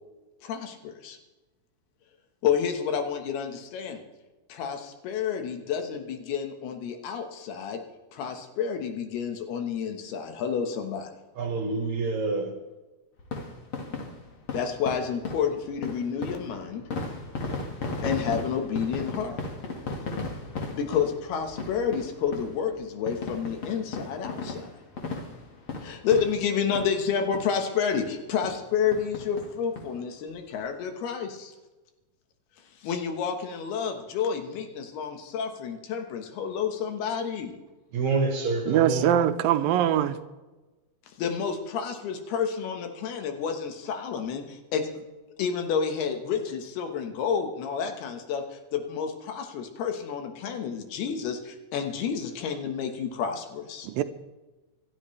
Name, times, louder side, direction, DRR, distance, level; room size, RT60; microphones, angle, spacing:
voice 1, 0.4-1.2 2.4-4.0 4.5-7.8 8.1-11.1 14.5-16.8 18.0-19.4 20.7-24.7 25.8-31.5 32.8-37.5 41.2-45.0 45.4-53.9, left 7 dB, 85° left, 3.4 m, -30 dB
voice 2, 11.4-12.5 37.9-39.1, right 3 dB, 55° right, 2.5 m, -27 dB
sound 1, 13.2-27.1 27.3-27.5 27.9-28.0 28.4-28.6 28.9-29.9 30.3-30.4 30.6-30.7, left 3 dB, 45° left, 2.1 m, -36 dB
voice 3, 38.7-40.2 53.8-54.0, right 10 dB, 80° right, 2.3 m, -22 dB
26.5 x 12.5 x 3.3 m
omnidirectional pair, 4.4 m